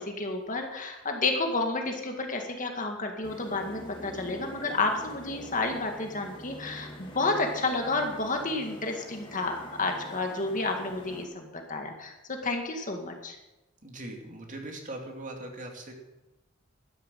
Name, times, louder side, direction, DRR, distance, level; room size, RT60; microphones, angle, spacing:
voice 1, 0.0-13.4, left 3 dB, 40° left, 3 dB, 2.0 m, -31 dB
sound 1, 3.2-11.3, equal, 25° left, 2.7 m, -45 dB
voice 2, 13.8-15.9, right 1 dB, 40° right, 2 dB, 2.5 m, -40 dB
12.5 x 10.5 x 7.5 m, 1.0 s
head